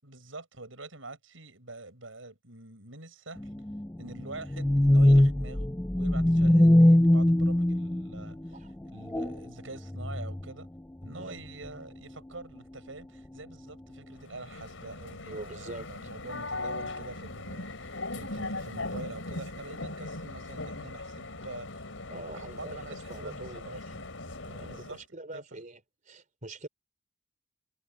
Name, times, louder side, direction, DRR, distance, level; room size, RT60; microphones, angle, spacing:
voice 1, 0.0-3.5 4.0-8.6 8.9-10.7 11.0-21.9 22.3-24.1 24.6-25.0 25.3-25.4, right 2 dB, 80° right, 7.1 m, -45 dB
sound 1, 3.4-8.5 9.0-9.5 9.9-10.5 11.0-11.2 11.6-11.7, left 1 dB, 10° left, 0.4 m, -22 dB
sound 2, 14.2-25.0, left 2 dB, 80° left, 4.8 m, -39 dB
voice 2, 15.3-16.1 22.1-23.6 24.4-25.8 26.1-26.7, right 2 dB, 40° right, 3.8 m, -44 dB
head